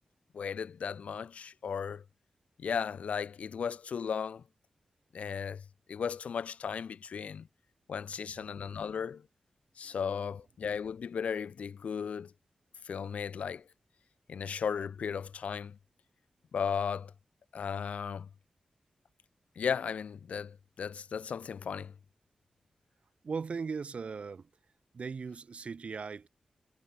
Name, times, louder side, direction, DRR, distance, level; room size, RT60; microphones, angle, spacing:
voice 1, 0.3-2.0 2.6-4.4 5.1-7.5 7.9-9.2 9.8-12.3 12.8-13.6 14.3-15.8 16.5-17.1 17.5-18.3 19.6-21.9, left 6 dB, 85° left, 1.9 m, -35 dB
voice 2, 23.2-24.5 24.9-26.3, right 5 dB, 65° right, 2.0 m, -38 dB
cardioid pair, 50°, 2 cm